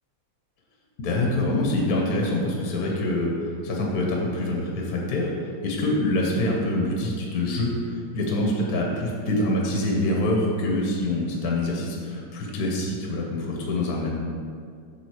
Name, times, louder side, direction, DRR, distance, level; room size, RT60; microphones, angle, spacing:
voice 1, 1.0-14.1, left 1 dB, 55° left, -1 dB, 1.4 m, -25 dB
7.4 x 3.8 x 6.4 m, 2.2 s
omnidirectional pair, 2.3 m